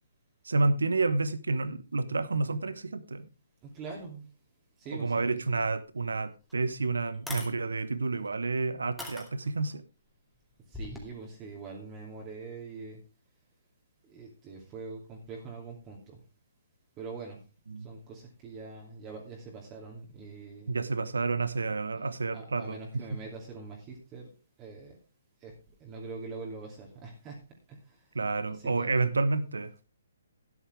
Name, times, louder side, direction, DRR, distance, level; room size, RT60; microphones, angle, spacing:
voice 1, 0.4-3.3 4.9-9.8 17.7-17.9 20.7-23.2 28.1-29.8, right 3 dB, 75° right, 1.1 m, -30 dB
voice 2, 3.6-4.2 4.8-5.4 10.7-13.0 14.1-16.2 17.0-17.4 17.8-20.7 21.9-22.0 22.3-24.3 24.6-25.0 25.4-25.5 25.8-27.3 27.7-28.0 28.6-28.9, right 4 dB, 25° right, 2.8 m, -43 dB
sound 1, 6.5-6.6 7.1-7.5 8.3-8.4 9.0-9.7 10.7-11.1, left 2 dB, ahead, 2.6 m, -40 dB
12.5 x 10.0 x 3.5 m
figure-of-eight pair, 135°, 0 cm